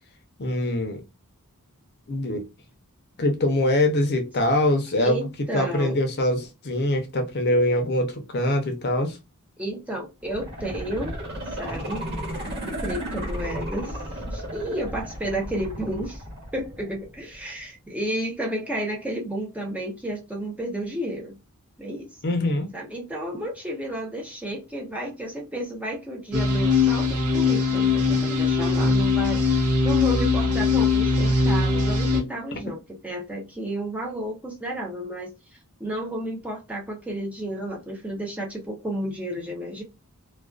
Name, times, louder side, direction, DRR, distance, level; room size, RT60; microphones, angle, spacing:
voice 1, 0.4-1.0 2.1-2.4 3.2-5.3 5.5-9.2 22.2-22.7, left 1 dB, 50° left, 0.6 m, -23 dB
voice 2, 5.0-6.0 9.6-11.1 11.5-12.0 12.8-16.2 16.5-21.4 21.8-22.2 22.7-35.3 35.8-39.8, right 1 dB, 5° right, 0.6 m, -32 dB
sound 1, 10.2-17.2 17.6-17.7, equal, 50° right, 1.2 m, -34 dB
sound 2, 26.3-32.2, left 4 dB, 85° right, 0.9 m, -21 dB
2.4 x 2.3 x 2.3 m
head